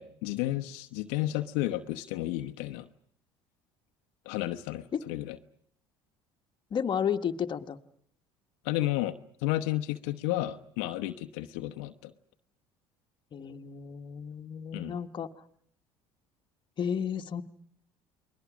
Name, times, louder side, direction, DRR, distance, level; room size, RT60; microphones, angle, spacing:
voice 1, 0.0-2.9 4.3-5.4 8.6-9.2 9.4-12.1 14.7-15.0, left 15 dB, 80° left, 6 dB, 0.9 m, -32 dB
voice 2, 6.7-7.8 13.3-15.3 16.8-17.4, left 8 dB, 40° left, 5 dB, 1.4 m, -32 dB
29.5 x 21.0 x 6.2 m, 0.66 s
supercardioid pair, 80°, 12 cm